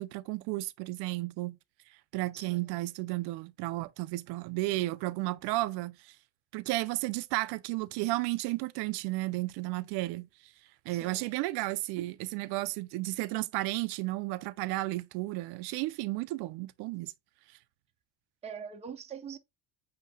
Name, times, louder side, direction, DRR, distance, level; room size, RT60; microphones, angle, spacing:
voice 1, 0.0-1.6 2.1-6.1 6.5-10.3 10.9-17.1, right 19 dB, 60° right, 0.5 m, -33 dB
voice 2, 10.9-11.3 18.4-19.4, right 7 dB, 15° right, 0.7 m, -43 dB
8.1 x 2.9 x 2.2 m
supercardioid pair, 105°, 44 cm